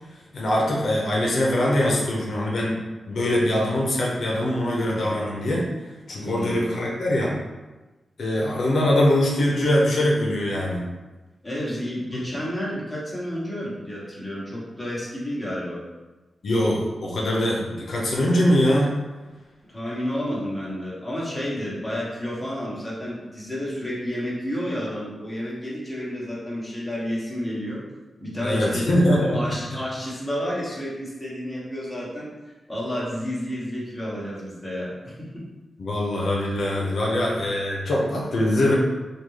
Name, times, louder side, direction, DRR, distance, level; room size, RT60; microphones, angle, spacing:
voice 1, 0.3-2.8 3.1-5.6 6.1-7.3 8.2-10.8 16.4-18.9 28.4-29.4 35.8-38.7, left 1 dB, 65° left, -3 dB, 0.6 m, -22 dB
voice 2, 6.2-6.7 11.4-15.8 19.6-27.8 28.2-28.9 29.3-35.4, equal, 5° left, -7 dB, 1.0 m, -31 dB
3.6 x 2.3 x 3.1 m, 1.2 s
wide cardioid pair, 125°, 0 cm